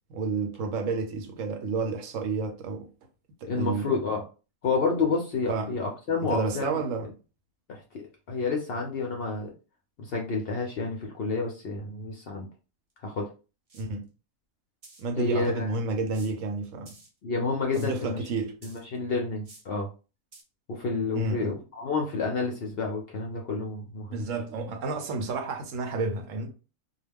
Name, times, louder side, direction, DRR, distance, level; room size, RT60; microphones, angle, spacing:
voice 1, 0.1-2.9 3.4-4.0 5.5-5.7 6.3-7.1 13.7-14.1 15.0-17.0 17.8-18.6 21.1-21.6 24.1-26.5, right 3 dB, 70° right, 0.9 m, -30 dB
voice 2, 3.4-4.2 4.6-6.8 7.7-9.5 10.0-12.5 13.0-13.3 15.2-15.7 17.2-18.3 18.6-19.9 20.7-24.2, left 4 dB, 65° left, 0.6 m, -29 dB
sound 1, 13.0-13.1 13.7-13.9 14.8-15.1 16.1-16.5 16.9-17.1 17.7-18.0 18.6-19.0 19.4-19.7 20.3-20.4, right 2 dB, 45° right, 0.5 m, -51 dB
2.3 x 2.2 x 3.3 m
omnidirectional pair, 1.4 m